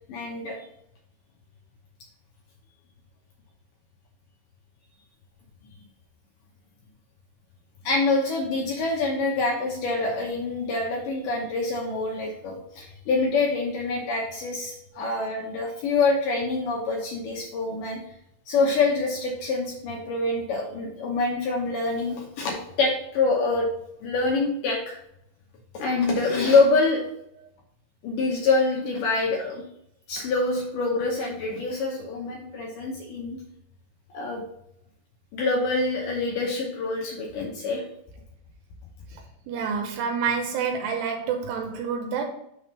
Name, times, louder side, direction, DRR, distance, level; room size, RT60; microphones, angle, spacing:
voice 1, 0.1-0.6 7.8-18.0 18.5-23.7 24.0-25.0 25.7-27.0 28.0-29.6 30.1-33.4 34.1-34.4 35.3-37.8, left 3 dB, 75° left, 2.1 m, -25 dB
voice 2, 39.1-42.3, right 6 dB, 85° right, 2.8 m, -28 dB
6.2 x 3.5 x 5.3 m
omnidirectional pair, 4.7 m